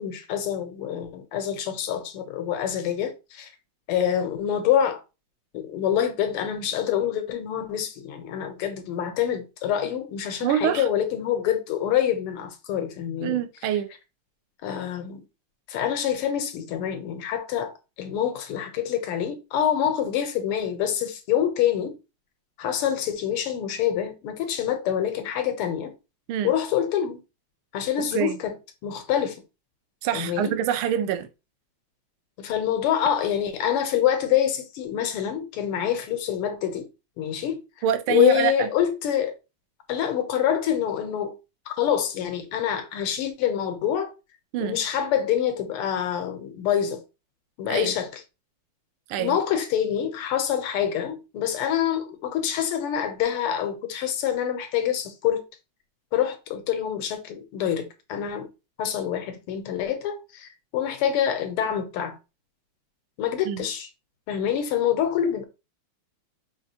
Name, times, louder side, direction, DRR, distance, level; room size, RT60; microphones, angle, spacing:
voice 1, 0.0-3.5 3.9-5.0 5.5-13.4 14.6-15.2 15.7-17.7 18.0-21.9 22.6-25.9 26.4-27.2 27.7-28.6 28.8-29.4 30.1-30.5 32.4-36.9 37.2-37.6 38.1-39.3 39.9-41.3 41.7-44.1 44.6-47.0 47.6-48.2 49.2-55.4 56.1-58.5 58.8-62.2 63.2-63.9 64.3-65.5, left 9 dB, 85° left, 1.7 m, -26 dB
voice 2, 10.4-10.9 13.2-13.9 26.3-26.5 28.1-28.4 30.0-31.3 37.8-38.7 44.5-44.8 47.7-47.9 49.1-49.4 63.5-63.6, right 10 dB, 75° right, 1.4 m, -25 dB
5.6 x 3.0 x 2.7 m
omnidirectional pair, 2.4 m